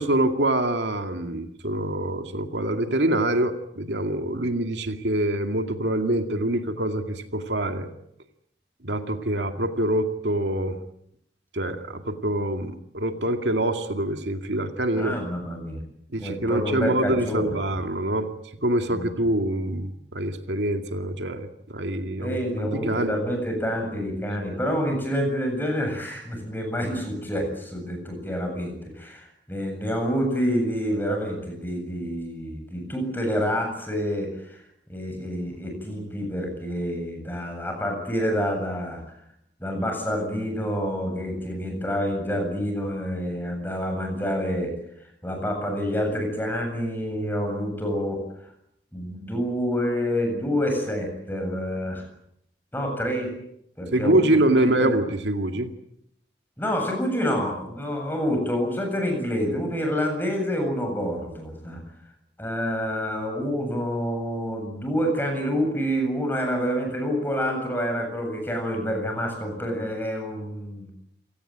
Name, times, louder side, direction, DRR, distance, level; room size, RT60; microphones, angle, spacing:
voice 1, 0.0-7.9 8.8-10.8 11.5-15.2 16.1-18.3 18.6-23.1 53.9-55.7, right 1 dB, 80° right, 6 dB, 2.2 m, -25 dB
voice 2, 14.9-15.8 16.2-17.8 18.9-19.2 22.2-34.6 34.9-39.0 39.6-44.7 45.2-48.2 48.9-52.0 52.7-53.3 53.8-54.9 56.6-61.8 62.4-70.9, equal, 10° left, 3 dB, 7.8 m, -28 dB
29.0 x 18.5 x 8.9 m, 0.76 s
head